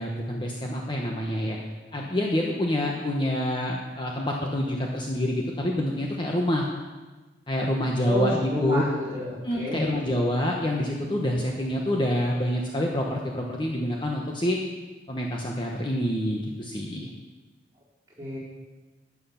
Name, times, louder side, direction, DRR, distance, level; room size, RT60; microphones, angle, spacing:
voice 1, 0.0-1.6 1.9-6.7 7.5-8.8 9.4-14.6 15.1-17.1, left 1 dB, 25° left, -1 dB, 1.1 m, -27 dB
voice 2, 8.1-9.8 18.2-18.4, equal, 15° right, -8 dB, 4.1 m, -29 dB
12.0 x 8.4 x 5.8 m, 1.2 s
head